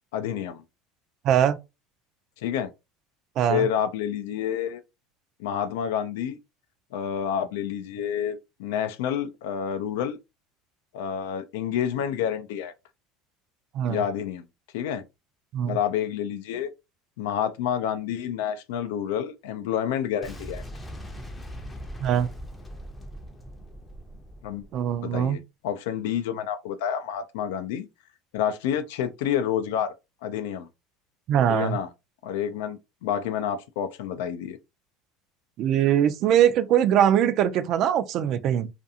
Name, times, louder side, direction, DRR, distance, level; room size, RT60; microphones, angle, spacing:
voice 1, 0.1-0.6 2.4-2.7 3.5-4.8 5.4-6.4 6.9-10.2 10.9-12.7 13.9-14.4 14.7-15.0 15.7-16.7 17.2-20.6 24.4-24.6 25.0-27.9 28.3-29.9 30.2-30.7 31.5-31.9 32.2-34.6, left 9 dB, 85° left, 0.3 m, -29 dB
voice 2, 1.2-1.6 3.4-3.7 13.7-14.0 15.5-15.8 22.0-22.3 24.7-25.4 31.3-31.8 35.6-38.7, right 10 dB, 50° right, 0.3 m, -22 dB
Boom, 20.2-25.1, equal, 10° left, 0.5 m, -40 dB
2.5 x 2.3 x 2.6 m
supercardioid pair, 130°, 0 cm